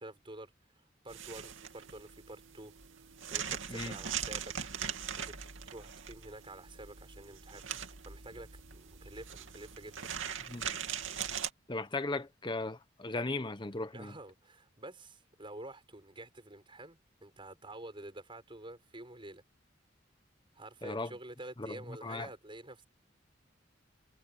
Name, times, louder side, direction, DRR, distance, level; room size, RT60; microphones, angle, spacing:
voice 1, 0.0-2.7 3.3-4.5 5.2-5.4 5.7-7.6 8.1-10.1 13.9-19.4 20.6-22.8, right 1 dB, 25° right, 6.8 m, -49 dB
sound 1, 1.1-11.5, right 8 dB, 75° right, 2.7 m, -41 dB
voice 2, 11.7-14.1 20.8-21.1 21.6-21.8 22.0-22.3, left 2 dB, 25° left, 1.0 m, -37 dB
head